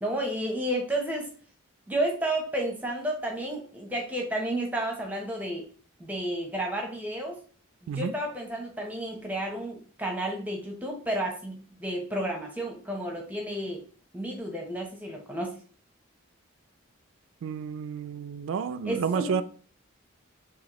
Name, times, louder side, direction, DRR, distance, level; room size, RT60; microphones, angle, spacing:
voice 1, 0.0-1.3 1.9-5.7 6.0-7.3 7.9-13.8 14.1-15.6 18.8-19.4, right 1 dB, 10° right, 0.7 m, -31 dB
voice 2, 17.4-19.4, right 6 dB, 75° right, 0.3 m, -30 dB
4.0 x 2.6 x 3.0 m
head